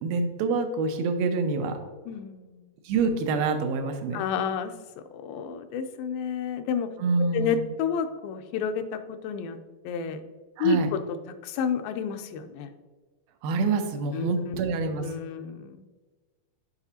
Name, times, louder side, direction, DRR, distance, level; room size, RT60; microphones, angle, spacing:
voice 1, 0.0-1.8 2.8-4.2 7.0-7.6 10.6-10.9 13.4-15.1, right 4 dB, 90° right, 6 dB, 2.5 m, -26 dB
voice 2, 2.1-2.6 4.1-4.7 5.1-6.9 7.2-9.6 9.8-10.2 10.6-11.0 11.4-12.7 14.1-14.6 15.0-15.8, left 6 dB, 85° left, 8 dB, 2.3 m, -30 dB
8.1 x 4.9 x 2.8 m, 1.3 s
omnidirectional pair, 4.1 m